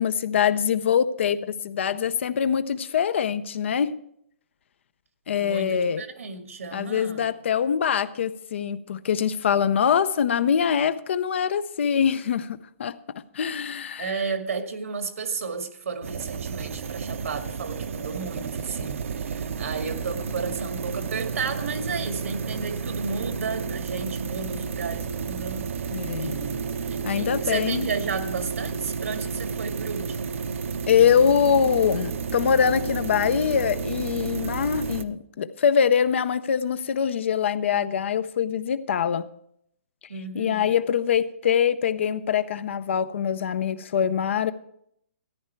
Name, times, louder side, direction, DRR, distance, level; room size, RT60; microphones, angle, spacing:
voice 1, 0.0-3.9 5.3-6.0 6.7-13.0 13.3-14.2 25.9-26.4 27.0-27.9 30.9-39.2 40.3-44.5, left 8 dB, 60° left, 0.6 m, -23 dB
voice 2, 5.4-7.3 14.0-25.7 26.2-30.4 40.1-40.7, right 5 dB, 80° right, 2.0 m, -33 dB
sound 1, 16.0-35.1, right 5 dB, 65° right, 0.9 m, -31 dB
14.0 x 10.5 x 4.5 m
hypercardioid pair, 160°, 7 cm